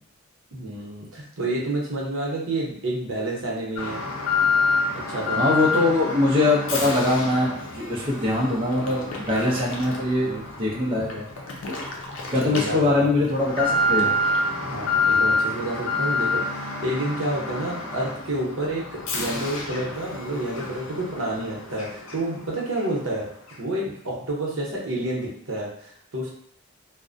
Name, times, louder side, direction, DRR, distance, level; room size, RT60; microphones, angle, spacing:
voice 1, 0.5-4.0 5.1-5.4 10.2-10.5 12.4-13.1 14.6-23.2 23.6-26.3, right 1 dB, 75° right, -3 dB, 0.7 m, -29 dB
Alarm, 3.8-22.4 22.7-22.9 23.5-23.6, left 2 dB, 85° left, 0.5 m, -28 dB
voice 2, 5.4-11.3 12.3-14.1, left 2 dB, 25° right, -6 dB, 0.5 m, -22 dB
2.4 x 2.0 x 2.5 m, 0.68 s
head